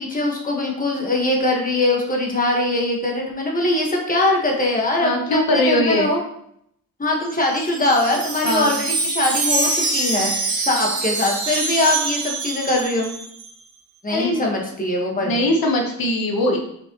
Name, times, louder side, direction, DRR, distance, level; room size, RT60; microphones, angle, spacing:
voice 1, 0.0-6.2 7.0-13.2 14.0-15.4, left 2 dB, 25° left, -1 dB, 1.4 m, -22 dB
voice 2, 5.0-6.1 8.4-8.8 14.1-14.4 15.2-16.6, left 1 dB, 75° left, 1 dB, 1.2 m, -20 dB
Wind chime, 7.3-13.5, right 3 dB, 75° right, 1.4 m, -25 dB
7.3 x 6.5 x 3.0 m, 0.71 s
wide cardioid pair, 165°, 36 cm